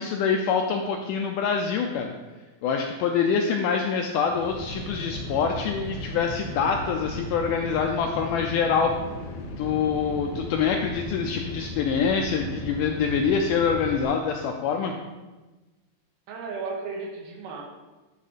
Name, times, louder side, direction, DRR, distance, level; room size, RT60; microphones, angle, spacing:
voice 1, 0.0-2.1 2.6-8.9 9.6-14.9, left 6 dB, 85° left, 3 dB, 1.8 m, -25 dB
sound 1, 4.2-14.0, left 1 dB, 65° left, 2.1 m, -36 dB
voice 2, 16.3-17.6, right 4 dB, 90° right, 2 dB, 3.1 m, -34 dB
11.0 x 3.7 x 5.0 m, 1.2 s
omnidirectional pair, 4.3 m